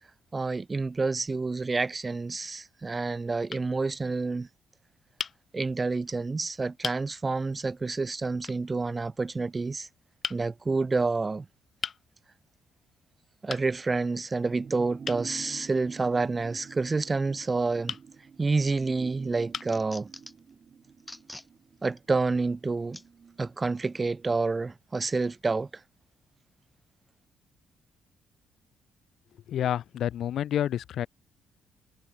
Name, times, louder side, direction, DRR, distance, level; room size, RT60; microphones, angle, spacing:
voice 1, 0.3-4.5 5.5-9.9 10.3-11.5 13.4-18.0 18.4-20.1 21.8-23.0 23.4-25.7, right 3 dB, 25° right, 2.7 m, -28 dB
sound 1, 2.0-2.3 3.1-3.2 3.5-3.7 5.2-5.4 6.2-6.3 6.8-7.0 8.4-8.6 10.2-10.4 11.8-12.0 13.5-13.7 15.0-15.3 17.9-18.1 18.9-19.0 19.5-19.8, left 6 dB, 45° left, 2.4 m, -36 dB
sound 2, 14.4-24.3 24.6-24.7, right 6 dB, 45° right, 3.8 m, -48 dB
sound 3, 18.4-18.8 19.2-20.5 21.0-21.5 22.0-22.1 22.9-23.1 23.8-24.0, left 1 dB, 10° left, 2.9 m, -46 dB
voice 2, 29.5-31.1, left 10 dB, 70° left, 2.2 m, -29 dB
cardioid pair, 90°, 0 cm